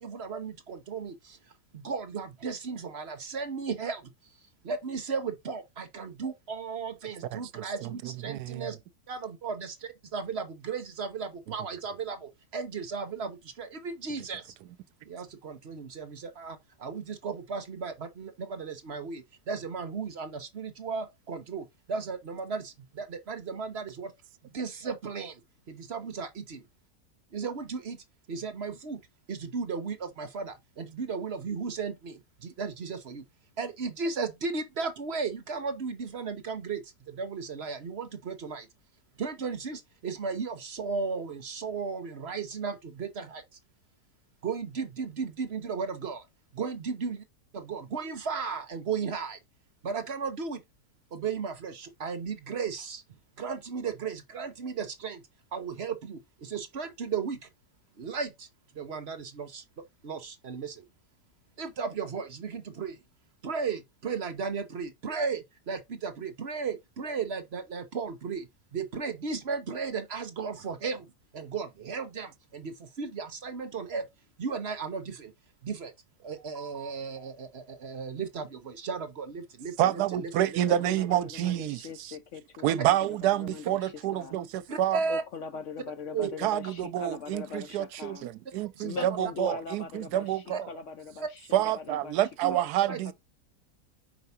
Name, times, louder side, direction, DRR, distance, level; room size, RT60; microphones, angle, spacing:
voice 1, 0.0-1.4 1.7-4.1 4.6-8.8 9.1-14.5 15.0-24.1 24.4-25.4 25.7-26.6 27.3-29.0 29.3-33.3 33.6-38.7 39.2-43.4 44.4-46.3 46.5-47.2 47.5-49.4 49.8-50.6 51.1-53.0 53.4-55.2 55.5-57.5 58.0-58.5 58.7-60.9 61.6-63.0 63.4-71.1 71.3-74.1 74.4-75.3 75.6-75.9 76.2-80.6 84.7-85.2 86.1-86.3 88.8-89.2 90.5-90.6 92.4-93.0, right 5 dB, 50° right, 0.9 m, -35 dB
voice 2, 7.3-8.7 79.8-82.1 82.6-85.0 86.4-90.7 91.5-93.1, right 12 dB, 80° right, 1.1 m, -28 dB
voice 3, 80.7-84.4 85.1-88.3 88.8-92.2 92.5-93.1, left 6 dB, 65° left, 0.8 m, -41 dB
4.9 x 4.5 x 5.5 m
omnidirectional pair, 1.7 m